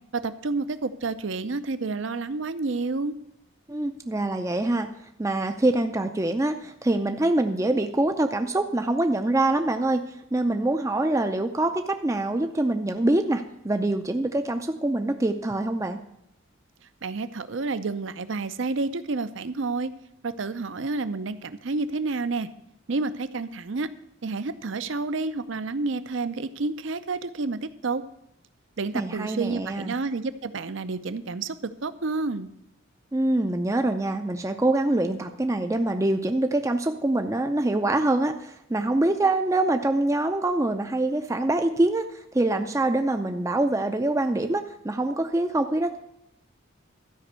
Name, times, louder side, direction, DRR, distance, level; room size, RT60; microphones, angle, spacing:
voice 1, 0.1-3.2 17.0-19.9 20.2-22.5 22.9-23.9 24.2-28.0 28.8-31.5 31.8-32.5, right 3 dB, 65° right, 13 dB, 0.6 m, -29 dB
voice 2, 3.7-4.9 5.2-10.0 10.3-16.0 28.9-29.9 33.1-46.0, right 2 dB, 15° right, 6 dB, 0.5 m, -25 dB
13.0 x 5.3 x 8.1 m, 0.78 s
head